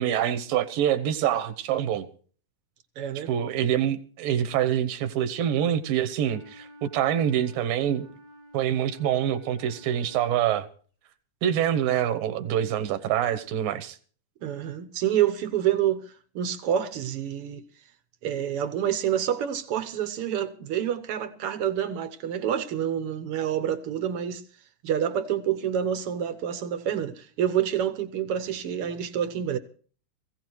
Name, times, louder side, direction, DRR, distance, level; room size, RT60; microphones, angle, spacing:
voice 1, 0.0-2.1 3.3-8.1 8.5-10.7 11.4-14.0, right 10 dB, 90° right, 2.9 m, -25 dB
voice 2, 3.0-3.3 14.4-17.6 18.2-24.4 24.8-29.6, right 10 dB, 70° right, 1.3 m, -28 dB
Wind instrument woodwind instrument, 6.2-10.7, left 1 dB, 85° left, 8.6 m, -51 dB
21.5 x 16.0 x 3.1 m
omnidirectional pair, 3.9 m